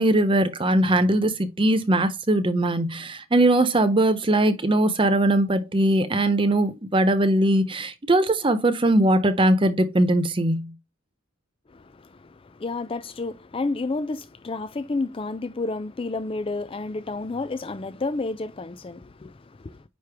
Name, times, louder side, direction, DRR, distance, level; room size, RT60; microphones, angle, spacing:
voice 1, 0.0-10.7, right 1 dB, 25° right, 0.6 m, -20 dB
voice 2, 11.7-19.8, left 3 dB, 25° left, 0.4 m, -31 dB
9.4 x 3.2 x 3.4 m
head